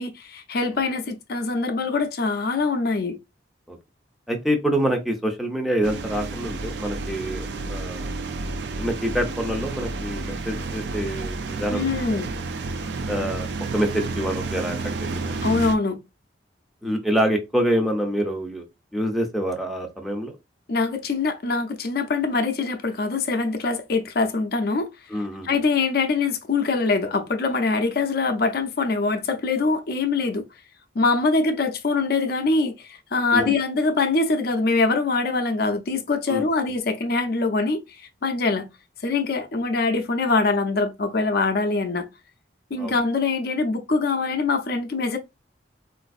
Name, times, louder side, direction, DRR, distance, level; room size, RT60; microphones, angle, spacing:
voice 1, 0.0-3.2 11.7-12.3 15.4-16.0 20.7-24.9 25.4-30.4 31.0-38.7 39.0-42.1 42.7-45.2, left 3 dB, 55° left, 0.5 m, -23 dB
voice 2, 4.3-8.1 8.8-12.2 13.1-15.3 16.8-18.6 18.9-20.4 25.1-25.5 33.3-33.5 36.3-36.4 42.8-42.9, equal, ahead, 0.5 m, -26 dB
sound 1, 5.8-15.8, right 3 dB, 70° right, 0.4 m, -31 dB
3.9 x 2.5 x 2.4 m
head